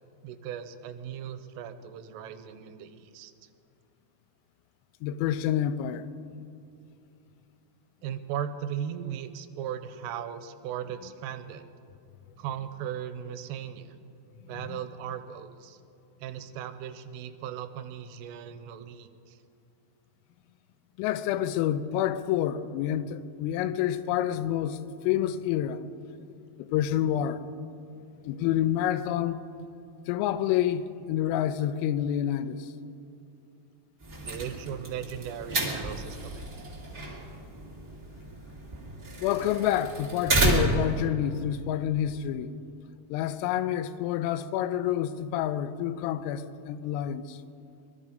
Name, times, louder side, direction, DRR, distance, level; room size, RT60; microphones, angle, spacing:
voice 1, 0.2-3.3 8.0-11.7 12.4-14.0 14.4-15.8 16.2-19.4 34.2-36.5, right 9 dB, 85° right, 3.2 m, -37 dB
voice 2, 5.0-6.1 14.7-14.8 21.0-25.8 26.6-27.4 28.2-29.4 30.1-32.7 39.2-42.5 43.1-47.4, left 11 dB, 90° left, 3.3 m, -28 dB
sound 1, 34.0-41.0, right 2 dB, 35° right, 1.4 m, -31 dB
21.5 x 12.5 x 5.0 m
omnidirectional pair, 5.8 m